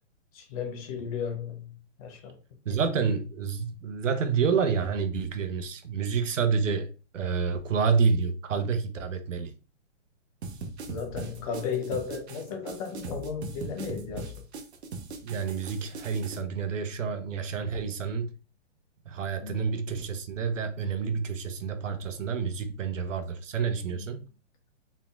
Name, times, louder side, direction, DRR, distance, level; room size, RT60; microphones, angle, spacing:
voice 1, 0.3-2.4 10.9-14.4 19.4-19.7 23.9-24.1, left 6 dB, 30° left, 0.8 m, -35 dB
voice 2, 2.6-9.5 15.2-18.3 19.0-24.2, right 5 dB, 90° right, 0.8 m, -28 dB
sound 1, 10.4-16.4, right 3 dB, 60° right, 0.9 m, -40 dB
4.1 x 3.6 x 2.3 m
hypercardioid pair, 150°, 37 cm